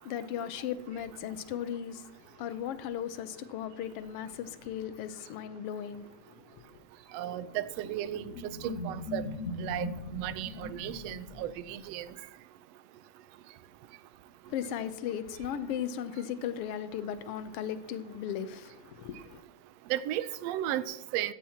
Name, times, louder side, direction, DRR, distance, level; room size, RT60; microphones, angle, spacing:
voice 1, 0.0-6.8 14.5-19.4, left 9 dB, 75° left, 1.4 m, -37 dB
sound 1, 7.1-12.1, left 3 dB, 35° left, 1.5 m, -41 dB
voice 2, 7.1-9.2 9.6-12.1 19.9-21.3, right 12 dB, 80° right, 1.5 m, -35 dB
16.0 x 14.5 x 2.9 m
omnidirectional pair, 3.5 m